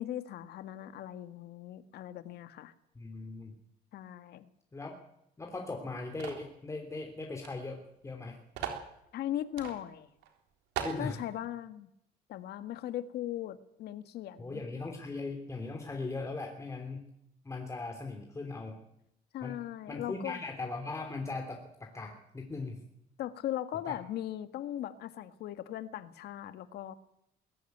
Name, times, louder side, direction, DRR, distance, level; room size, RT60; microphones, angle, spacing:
voice 1, 0.0-2.7 3.9-4.5 9.1-10.1 11.0-11.9 12.3-14.6 19.3-20.4 23.2-26.9, left 12 dB, 70° left, 11 dB, 1.7 m, -39 dB
voice 2, 2.9-3.6 4.7-4.9 5.4-8.4 10.8-11.2 14.4-17.1 17.4-18.8 19.4-19.6 19.9-22.8 23.8-23.9, left 3 dB, 15° left, 3 dB, 3.1 m, -39 dB
sound 1, 6.2-6.5 7.4-7.5 7.8-7.9 8.5-8.9 9.6-9.8 10.2-10.3 10.8-11.0, right 9 dB, 90° right, 3.7 m, -37 dB
21.0 x 14.5 x 9.3 m, 0.80 s
cardioid pair, 110°, 17 cm